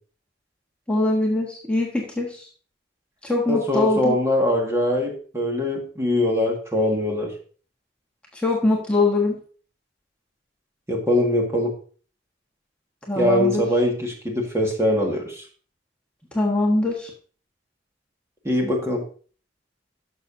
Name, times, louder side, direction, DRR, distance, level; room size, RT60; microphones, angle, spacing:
voice 1, 0.9-2.5 3.2-4.2 8.3-9.4 13.1-13.6 16.3-17.1, left 2 dB, 5° left, -2 dB, 1.4 m, -22 dB
voice 2, 3.5-7.3 10.9-11.7 13.2-15.4 18.4-19.0, left 1 dB, 15° right, 0 dB, 1.8 m, -22 dB
11.5 x 6.8 x 2.7 m, 0.41 s
head